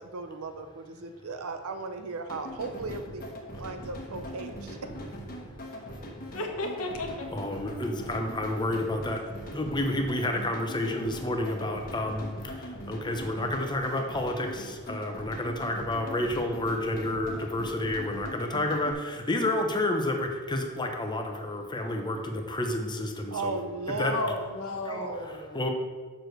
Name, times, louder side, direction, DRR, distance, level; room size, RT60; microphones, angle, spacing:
voice 1, 0.0-4.8 23.3-24.4 24.8-25.3, right 3 dB, 65° right, 7 dB, 0.7 m, -36 dB
sound 1, 2.3-18.9, equal, 40° left, 1.1 m, -41 dB
voice 2, 6.3-7.3 24.0-25.6, left 2 dB, 65° left, 3 dB, 1.1 m, -33 dB
voice 3, 7.3-9.2 9.5-12.3 12.9-23.6 24.0-24.3 24.8-25.1 25.5-25.7, left 1 dB, 20° left, 4 dB, 0.8 m, -30 dB
6.1 x 4.8 x 6.5 m, 1.5 s
head